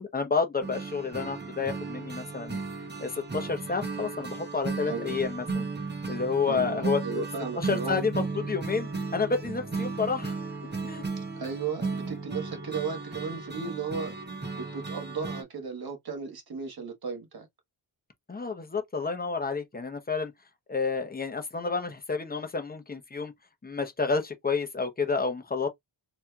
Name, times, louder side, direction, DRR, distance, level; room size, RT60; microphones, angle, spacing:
voice 1, 0.0-2.6 3.0-5.7 6.1-7.2 7.6-10.3 10.8-11.1 18.3-20.3 20.7-23.3 23.6-25.7, left 4 dB, 20° left, 0.8 m, -30 dB
sound 1, 0.6-15.4, right 4 dB, 20° right, 0.9 m, -35 dB
voice 2, 4.8-5.2 6.4-8.1 11.2-14.1 14.5-17.5, right 5 dB, 50° right, 1.4 m, -35 dB
4.2 x 2.8 x 2.3 m
wide cardioid pair, 130°, 46 cm